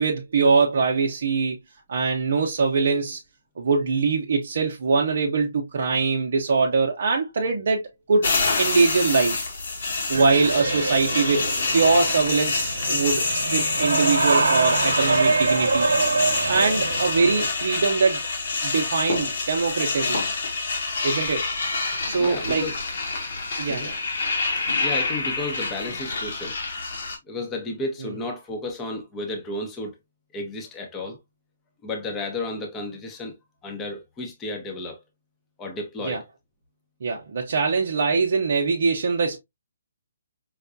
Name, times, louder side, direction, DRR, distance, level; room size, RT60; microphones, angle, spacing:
voice 1, 0.0-1.6 1.9-3.2 3.6-7.8 8.1-8.3 8.6-9.4 10.1-15.9 16.5-18.2 18.6-20.3 21.0-21.5 22.1-22.6 23.6-23.9 36.1-36.2 37.0-39.4, right 4 dB, 60° right, 0.6 m, -22 dB
sound 1, 8.2-27.2, left 3 dB, 65° left, 1.2 m, -27 dB
sound 2, 10.1-17.5, right 3 dB, 85° right, 0.9 m, -25 dB
voice 2, 22.2-22.7 23.7-23.9 24.8-26.6 27.2-30.0 30.3-31.2 31.8-33.4 33.6-35.0 35.6-36.2, left 2 dB, 15° left, 0.8 m, -32 dB
4.8 x 2.2 x 2.5 m
hypercardioid pair, 155°, 0 cm